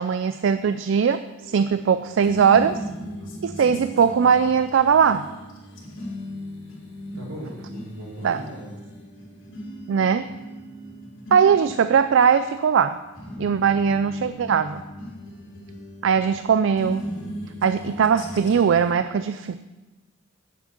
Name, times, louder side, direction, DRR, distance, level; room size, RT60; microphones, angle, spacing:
voice 1, 0.0-2.8 3.4-5.2 8.2-8.4 9.9-10.3 11.3-13.0 13.4-14.8 16.0-17.1 17.6-19.5, right 7 dB, 65° right, 11 dB, 0.3 m, -20 dB
sound 1, 1.4-18.9, left 1 dB, 70° left, 3.3 m, -38 dB
voice 2, 7.1-8.7, right 1 dB, 80° right, -5 dB, 4.2 m, -37 dB
9.6 x 7.4 x 5.8 m, 1.1 s
head